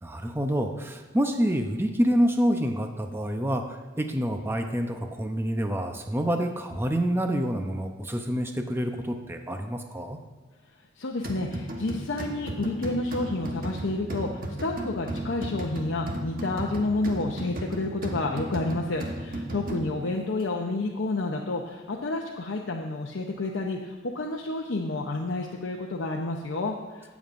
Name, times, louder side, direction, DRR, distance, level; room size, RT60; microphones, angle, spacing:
voice 1, 0.0-10.2, equal, 10° right, 5 dB, 0.6 m, -27 dB
voice 2, 11.0-27.1, left 2 dB, 70° left, 0 dB, 0.8 m, -30 dB
sound 1, 11.2-20.1, right 1 dB, 45° right, 1.2 m, -35 dB
17.0 x 7.2 x 2.6 m, 1.4 s
head